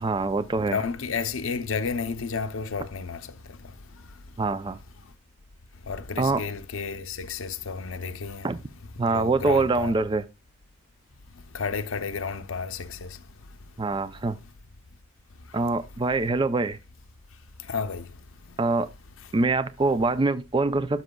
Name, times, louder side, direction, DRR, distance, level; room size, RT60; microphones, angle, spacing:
voice 1, 0.0-0.8 4.4-4.8 6.2-6.4 8.4-8.6 9.0-10.2 13.8-14.4 15.5-16.8 18.6-18.9 19.3-21.0, right 3 dB, 20° right, 0.4 m, -24 dB
voice 2, 0.6-3.2 5.9-8.5 9.1-9.9 11.5-13.1 17.7-18.1, left 5 dB, 70° left, 0.6 m, -31 dB
13.0 x 6.1 x 2.2 m
head